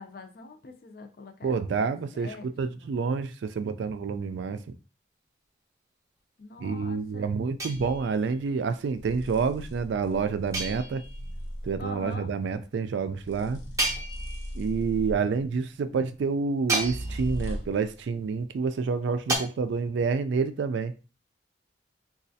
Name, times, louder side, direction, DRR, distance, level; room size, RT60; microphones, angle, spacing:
voice 1, 0.0-2.5 2.8-2.9 6.4-7.4 11.8-12.3, left 3 dB, 50° left, 0.5 m, -44 dB
voice 2, 1.4-4.6 6.6-11.0 11.6-13.6 14.5-20.9, right 5 dB, 75° right, 0.3 m, -28 dB
sound 1, 7.6-8.3 10.5-11.3 13.8-14.7 16.7-17.5 19.3-19.4, right 2 dB, 15° right, 0.6 m, -31 dB
sound 2, 7.8-8.1 9.0-11.9 13.2-15.4 16.8-17.9, equal, 85° left, 0.9 m, -38 dB
4.1 x 2.3 x 2.7 m
head